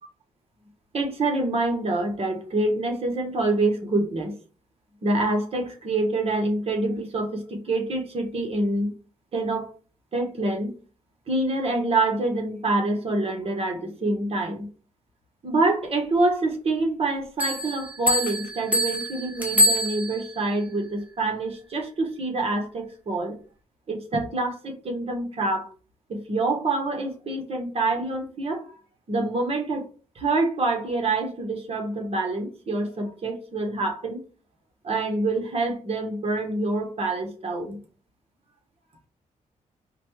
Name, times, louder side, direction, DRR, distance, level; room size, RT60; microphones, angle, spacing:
voice 1, 0.9-4.4 5.0-8.9 9.3-9.7 10.1-10.7 11.3-14.7 15.4-23.4 23.9-25.7 26.1-28.8 29.1-29.9 30.1-34.2 34.8-37.8, right 2 dB, 45° right, 3 dB, 1.2 m, -26 dB
sound 1, 17.4-20.4, left 1 dB, 10° right, 1.1 m, -25 dB
5.0 x 2.2 x 3.1 m, 0.37 s
cardioid pair, 90°, 14 cm